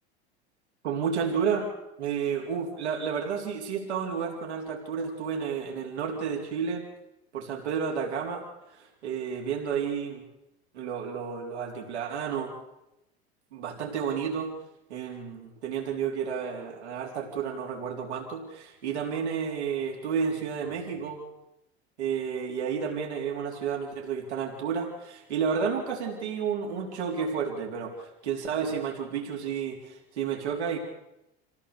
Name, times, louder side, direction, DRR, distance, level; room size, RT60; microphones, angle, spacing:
voice 1, 0.8-1.7 2.0-6.8 7.3-10.2 10.7-12.5 13.5-14.5 14.9-21.2 22.0-30.8, right 6 dB, 85° right, -1 dB, 3.9 m, -31 dB
27.0 x 16.5 x 6.9 m, 0.91 s
hypercardioid pair, 85°, 33 cm